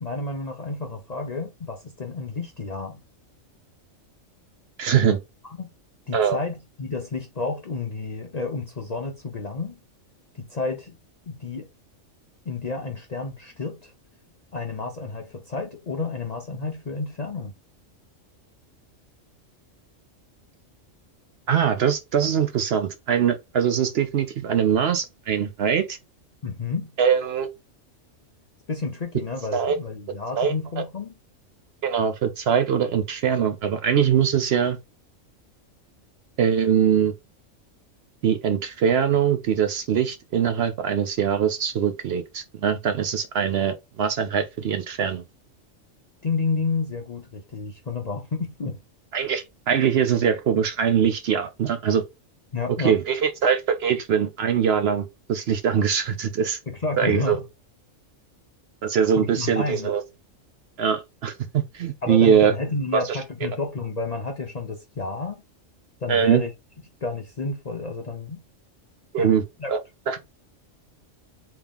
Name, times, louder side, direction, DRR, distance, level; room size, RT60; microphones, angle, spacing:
voice 1, 0.0-3.0 5.6-5.7 6.1-9.8 10.3-11.0 11.3-11.7 12.5-13.9 14.5-17.5 26.4-26.9 28.7-31.1 46.2-48.8 52.5-53.0 56.7-57.4 59.2-59.9 62.0-65.4 66.0-66.5 67.0-68.4 69.2-69.7, left 3 dB, 45° left, 0.5 m, -30 dB
voice 2, 4.8-5.2 6.1-6.4 21.5-26.0 27.0-27.5 29.5-29.8 30.4-30.5 31.8-34.8 36.4-37.1 38.2-45.2 49.1-52.0 52.8-56.6 57.0-57.4 58.8-60.0 60.8-61.3 61.7-62.5 62.9-63.2 66.1-66.4 69.1-69.4 69.7-69.8 70.1-70.2, right 8 dB, 60° right, 0.7 m, -22 dB
3.7 x 2.9 x 3.5 m
omnidirectional pair, 1.3 m